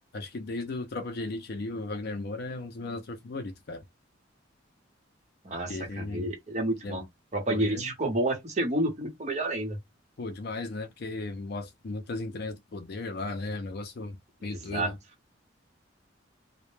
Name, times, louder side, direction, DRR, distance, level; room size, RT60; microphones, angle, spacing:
voice 1, 0.1-3.8 5.7-6.3 6.8-7.0 7.5-7.9 10.2-15.0, left 2 dB, 55° left, 0.4 m, -36 dB
voice 2, 5.4-7.0 7.3-9.8 14.4-14.9, right 1 dB, 35° right, 0.9 m, -30 dB
2.1 x 2.1 x 3.0 m
head